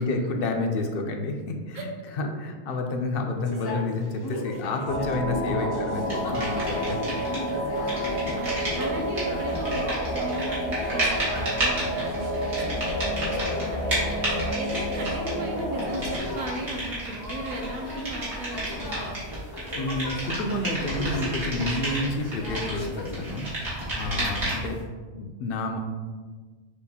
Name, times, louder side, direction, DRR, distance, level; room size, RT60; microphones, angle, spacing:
voice 1, 0.0-7.2 7.5-7.9 19.7-23.5 23.9-24.8 25.1-25.8, left 2 dB, 65° left, 4 dB, 0.7 m, -30 dB
sound 1, 3.4-23.2, left 2 dB, 40° left, 0.3 m, -38 dB
sound 2, 4.9-16.2, equal, 80° left, 1.0 m, -30 dB
sound 3, 6.1-7.5 7.8-24.8, right 1 dB, 75° right, 1.8 m, -32 dB
voice 2, 8.4-19.2 24.1-24.5, right 1 dB, 50° right, 2 dB, 0.7 m, -37 dB
6.4 x 2.5 x 2.7 m, 1.4 s
omnidirectional pair, 1.1 m